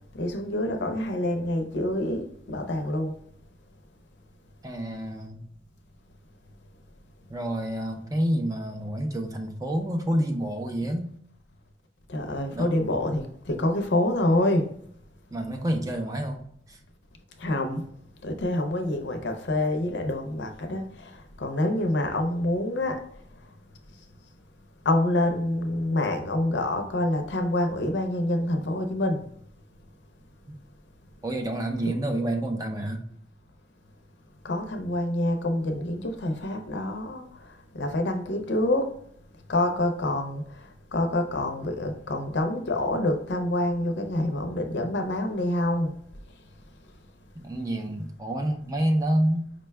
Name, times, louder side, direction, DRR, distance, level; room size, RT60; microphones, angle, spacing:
voice 1, 0.1-3.1 12.1-14.7 17.4-17.8 18.2-23.0 24.8-29.2 31.8-31.9 34.4-38.9 39.5-46.0, left 1 dB, 60° left, 0.6 m, -27 dB
voice 2, 4.6-5.4 7.3-11.1 12.5-12.8 15.3-16.4 16.7-16.8 31.2-33.0 47.4-49.5, right 1 dB, 20° right, 0.4 m, -28 dB
5.1 x 2.2 x 3.3 m
head